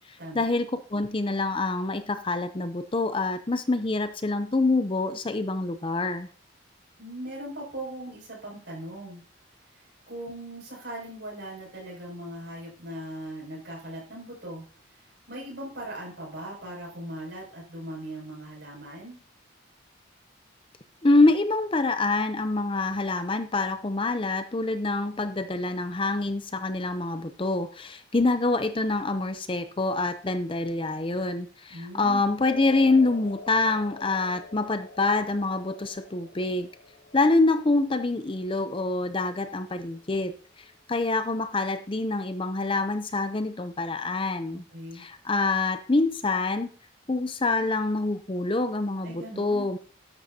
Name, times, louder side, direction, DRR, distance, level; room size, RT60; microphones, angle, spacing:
voice 1, 0.0-6.3 21.0-36.7 37.1-44.6 44.9-46.7 47.1-49.8, left 2 dB, 25° left, 10 dB, 0.6 m, -26 dB
voice 2, 7.0-9.2 10.1-14.6 15.0-19.2 31.7-32.3 44.5-45.1 49.0-49.7, right 1 dB, 55° right, -2 dB, 6.5 m, -39 dB
sound 1, 32.4-40.7, left 3 dB, 85° left, 4.8 m, -47 dB
13.0 x 11.0 x 2.8 m, 0.40 s
head